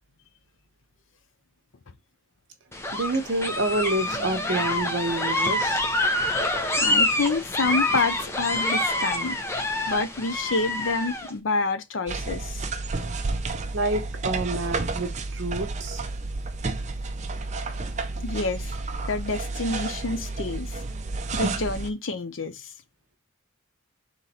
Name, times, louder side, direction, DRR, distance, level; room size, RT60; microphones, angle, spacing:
sound 1, 2.7-11.3, left 1 dB, 15° left, 0.7 m, -26 dB
voice 1, 2.9-5.8 13.7-16.0, right 2 dB, 60° right, 1.0 m, -28 dB
voice 2, 6.8-9.4 9.9-12.6 18.2-18.7 19.1-20.8 21.3-22.7, left 3 dB, 65° left, 0.6 m, -28 dB
sound 2, 12.1-21.9, right 3 dB, 35° right, 0.5 m, -31 dB
4.0 x 3.1 x 4.2 m
head